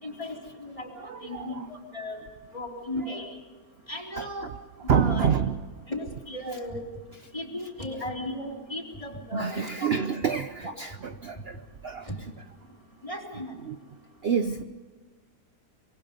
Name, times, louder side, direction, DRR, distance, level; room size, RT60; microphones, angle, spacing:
voice 1, 0.0-0.9 1.2-2.2 2.5-3.4 3.9-4.5 4.9-5.3 5.9-6.8 7.3-9.9 10.6-10.7 12.1-12.2 13.0-13.5, left 1 dB, 20° left, 0 dB, 3.7 m, -36 dB
voice 2, 0.9-1.7 2.9-3.4 4.2-4.5 4.8-5.6 6.5-6.6 7.1-7.7 8.0-8.1 9.3-12.3 13.5-13.8 14.2-14.6, right 7 dB, 50° right, 9 dB, 0.9 m, -29 dB
25.0 x 22.5 x 5.3 m, 1.4 s
omnidirectional pair, 1.5 m